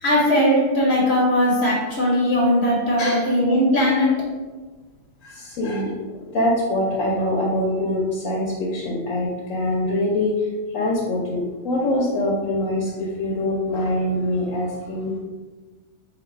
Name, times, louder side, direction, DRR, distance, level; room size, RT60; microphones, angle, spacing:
voice 1, 0.0-4.1, equal, 60° left, -4 dB, 1.2 m, -19 dB
voice 2, 5.2-5.9 6.2-10.4 10.7-15.1, left 1 dB, 85° left, -4 dB, 1.1 m, -24 dB
4.0 x 2.7 x 4.4 m, 1.3 s
omnidirectional pair, 1.3 m